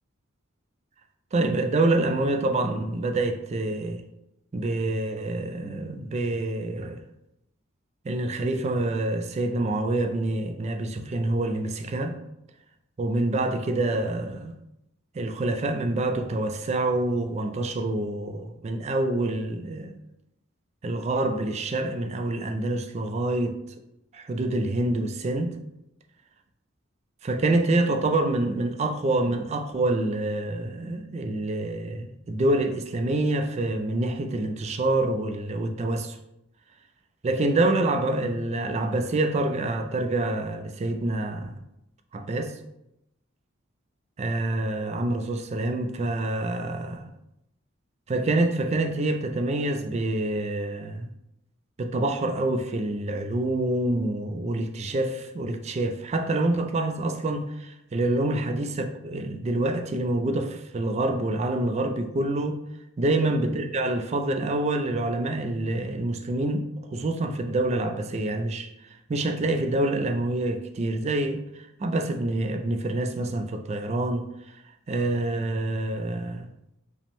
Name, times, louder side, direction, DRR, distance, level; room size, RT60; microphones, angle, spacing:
voice 1, 1.3-4.0 4.5-7.0 8.0-12.2 13.0-14.6 15.1-19.9 20.8-23.6 24.1-25.5 27.2-36.2 37.2-41.6 42.1-42.6 44.2-47.1 48.1-51.1 51.8-62.6 63.0-68.7 69.1-74.3 74.9-76.5, right 2 dB, 30° right, 0.3 m, -26 dB
5.0 x 2.1 x 3.4 m
head